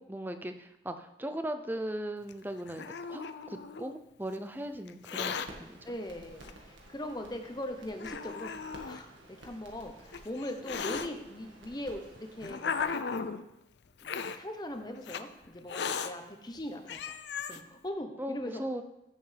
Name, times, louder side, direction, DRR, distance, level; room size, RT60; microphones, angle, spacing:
voice 1, 0.0-5.9 18.2-18.8, right 1 dB, 10° right, 8 dB, 0.5 m, -38 dB
Hiss, 2.3-3.9 4.9-5.5 6.4-6.5 7.3-7.4 8.0-9.0 9.9-11.1 11.9-13.4 14.0-14.4 15.0-15.2 15.7-16.1 16.6-16.7 16.9-17.6, left 6 dB, 65° left, 0.5 m, -36 dB
sound 1, 5.2-12.9, right 1 dB, 90° right, 1.8 m, -53 dB
voice 2, 5.8-9.1 9.4-13.3 14.0-17.2 17.5-18.6, left 1 dB, 20° left, 5 dB, 0.8 m, -40 dB
14.5 x 6.9 x 3.4 m, 0.90 s
head